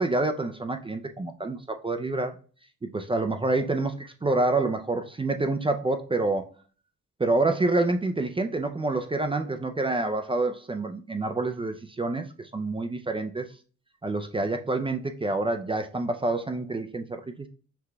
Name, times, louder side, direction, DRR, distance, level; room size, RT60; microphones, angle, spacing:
voice 1, 0.0-2.4 2.8-6.5 7.2-13.5 14.0-17.5, right 2 dB, 15° right, 0.4 m, -27 dB
5.9 x 3.2 x 2.2 m
cardioid pair, 90°, 31 cm